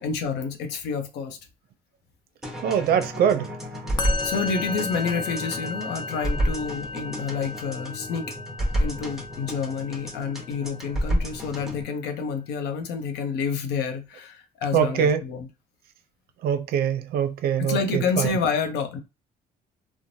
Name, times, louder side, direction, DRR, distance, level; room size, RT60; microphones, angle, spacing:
voice 1, 0.0-1.4 4.2-8.3 8.8-15.5 17.6-19.0, left 5 dB, 80° left, 0.6 m, -29 dB
sound 1, 2.4-11.8, equal, ahead, 0.9 m, -30 dB
voice 2, 2.6-3.5 14.7-15.2 16.4-18.3, right 8 dB, 65° right, 0.5 m, -23 dB
Musical instrument, 4.0-11.3, left 3 dB, 25° left, 0.4 m, -35 dB
3.1 x 2.1 x 2.6 m
cardioid pair, 110°, 17 cm